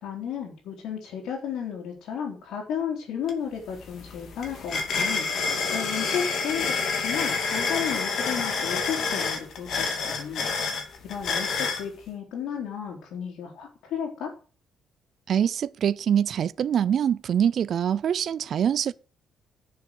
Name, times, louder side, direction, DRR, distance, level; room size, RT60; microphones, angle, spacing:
voice 1, 0.0-10.5 11.0-14.3, left 8 dB, 85° left, 3.6 m, -33 dB
sound 1, 3.3-3.4 3.7-11.8, left 4 dB, 55° left, 2.6 m, -28 dB
voice 2, 15.3-18.9, right 9 dB, 50° right, 0.4 m, -24 dB
11.0 x 7.0 x 6.9 m
cardioid pair, 155°, 0 cm